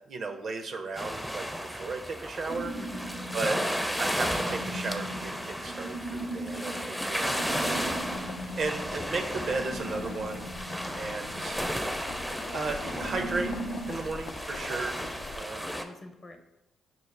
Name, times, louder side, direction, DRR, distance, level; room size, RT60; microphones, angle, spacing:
voice 1, 0.0-2.7 3.3-3.6 4.0-7.9 8.5-10.5 10.9-11.6 12.5-13.6 13.9-15.0 15.3-15.6, right 3 dB, 60° right, 5 dB, 0.5 m, -34 dB
sound 1, 1.0-15.8, equal, ahead, 0.4 m, -34 dB
sound 2, 2.5-13.9, right 1 dB, 90° left, 0.7 m, -40 dB
voice 2, 6.7-7.1 15.0-15.2 15.6-16.4, left 2 dB, 40° left, 5 dB, 0.7 m, -46 dB
sound 3, 7.4-15.4, left 5 dB, 70° left, 0.3 m, -44 dB
5.8 x 2.0 x 3.2 m, 0.94 s
supercardioid pair, 55°, 0 cm